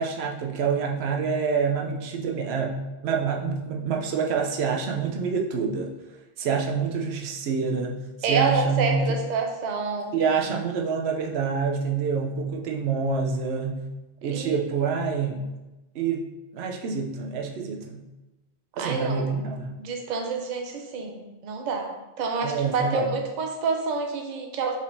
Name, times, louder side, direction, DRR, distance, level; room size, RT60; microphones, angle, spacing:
voice 1, 0.0-5.9 6.4-9.1 10.1-13.8 14.2-15.4 15.9-16.2 16.5-18.0 18.8-19.7 22.4-23.1, right 5 dB, 85° right, 1 dB, 0.8 m, -27 dB
voice 2, 8.2-10.2 14.3-14.6 18.8-19.3 19.8-21.9 22.2-24.8, right 4 dB, 55° right, 3 dB, 0.6 m, -28 dB
5.2 x 3.5 x 2.6 m, 1.1 s
omnidirectional pair, 1.0 m